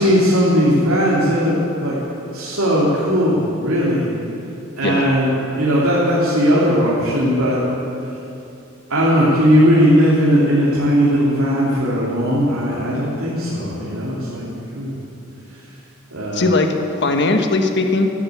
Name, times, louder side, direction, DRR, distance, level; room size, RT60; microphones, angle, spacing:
voice 1, 0.0-1.9 2.3-4.1 4.8-7.6 8.9-14.4 14.7-15.0 16.1-16.5, equal, 90° right, -8 dB, 2.9 m, -17 dB
voice 2, 16.3-18.1, left 2 dB, 55° left, 5 dB, 1.4 m, -18 dB
14.0 x 12.0 x 8.4 m, 2.8 s
head